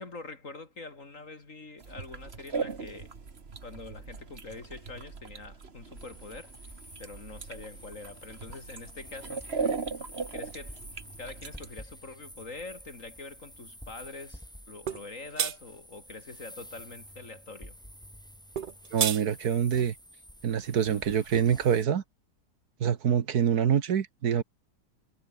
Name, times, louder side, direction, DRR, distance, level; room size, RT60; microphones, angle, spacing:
voice 1, 0.0-3.1 3.6-6.6 7.0-9.5 10.3-10.8 11.2-17.8, left 3 dB, 50° left, 3.5 m, -44 dB
sound 1, 1.8-11.7, right 4 dB, 40° right, 1.9 m, -38 dB
sound 2, 6.0-21.8, equal, ahead, 4.0 m, -49 dB
sound 3, 14.9-15.0 15.4-15.6 18.6-19.2, right 8 dB, 85° right, 0.4 m, -28 dB
voice 2, 18.9-19.9 20.4-22.0 22.8-24.4, right 8 dB, 65° right, 1.7 m, -25 dB
omnidirectional pair, 1.8 m